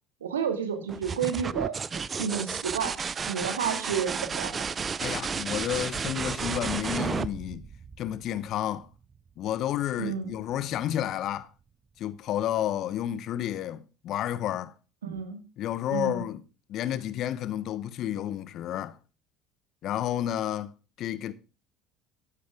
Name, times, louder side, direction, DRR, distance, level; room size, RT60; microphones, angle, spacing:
voice 1, 0.2-3.0 3.3-4.6 10.0-10.4 15.0-15.4 15.9-16.2, right 7 dB, 80° right, 2.1 m, -31 dB
sound 1, 0.9-8.5 10.2-10.8, right 6 dB, 30° right, 0.6 m, -32 dB
voice 2, 5.0-7.7 8.0-8.9 9.4-11.5 12.0-14.7 15.6-16.4 16.7-19.0 19.8-20.7 21.0-21.3, left 11 dB, 55° left, 1.0 m, -31 dB
13.5 x 10.5 x 3.6 m
figure-of-eight pair, 60°, 0 cm